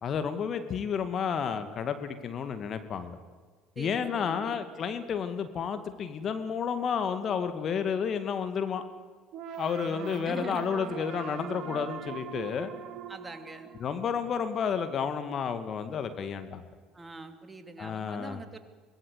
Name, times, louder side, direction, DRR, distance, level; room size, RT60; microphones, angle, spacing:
voice 1, 0.0-3.2 3.8-8.8 9.6-12.7 13.8-16.6 17.8-18.4, left 7 dB, 45° left, 9 dB, 2.1 m, -31 dB
voice 2, 3.8-4.6 10.2-10.6 13.1-13.7 16.9-18.6, right 2 dB, 20° right, 7 dB, 3.0 m, -43 dB
sound 1, 9.3-14.3, right 8 dB, 55° right, 1.9 m, -41 dB
24.0 x 19.0 x 8.3 m, 1.5 s
hypercardioid pair, 65°, 0 cm